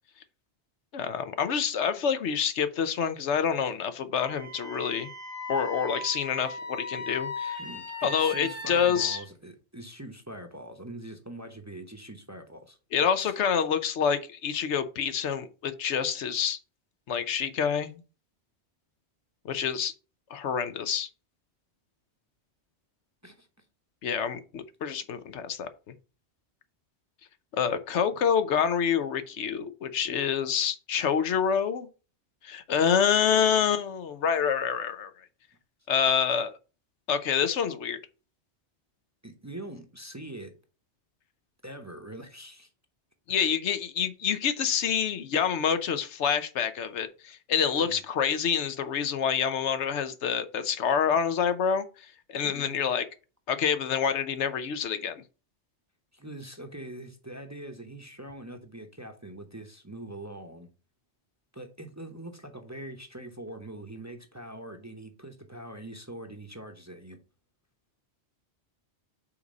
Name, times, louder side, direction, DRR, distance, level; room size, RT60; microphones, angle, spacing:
voice 1, 0.9-5.1 5.5-7.6 8.0-9.2 12.9-16.6 17.1-18.0 19.4-19.9 20.3-21.1 24.0-25.7 27.5-31.9 32.4-35.1 35.9-36.6 37.1-38.0 43.3-53.0 53.5-55.2, left 7 dB, 85° left, 1.0 m, -27 dB
Wind instrument woodwind instrument, 4.2-9.2, left 2 dB, 55° left, 2.4 m, -38 dB
voice 2, 7.6-12.8 13.2-13.3 23.2-23.5 39.2-40.5 41.6-42.7 47.8-48.0 52.4-52.8 56.1-60.7 61.5-67.2, right 1 dB, 15° right, 0.7 m, -43 dB
5.7 x 4.0 x 5.2 m
omnidirectional pair, 1.2 m